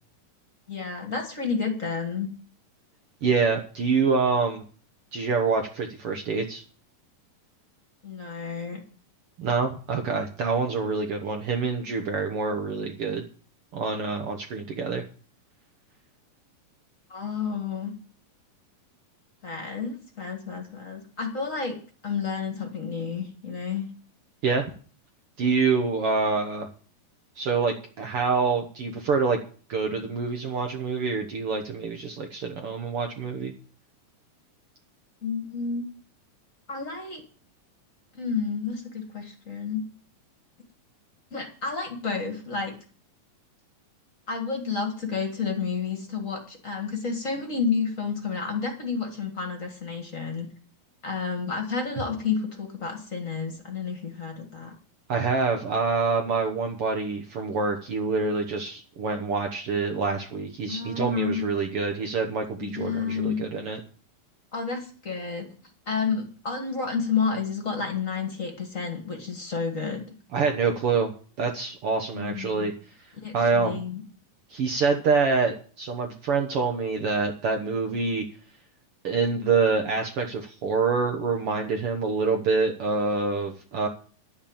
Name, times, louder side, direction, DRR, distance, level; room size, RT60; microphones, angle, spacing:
voice 1, 0.7-2.3 8.0-8.8 17.1-17.9 19.4-21.7 22.0-23.9 35.2-35.9 36.7-37.2 38.1-39.8 41.3-42.7 44.3-50.5 51.0-54.7 60.7-61.5 62.6-63.4 64.5-65.4 65.8-70.0 72.1-72.7 73.2-74.0, left 5 dB, 30° left, 4 dB, 1.6 m, -30 dB
voice 2, 3.2-4.6 5.1-6.6 9.4-13.2 13.7-15.0 24.4-24.7 25.4-26.7 27.4-29.4 29.7-33.5 55.1-63.8 70.3-71.1 71.4-72.7 73.3-73.8 74.5-78.2 79.0-83.9, right 4 dB, 60° right, 4 dB, 1.5 m, -26 dB
11.0 x 7.2 x 8.7 m, 0.41 s
omnidirectional pair, 4.0 m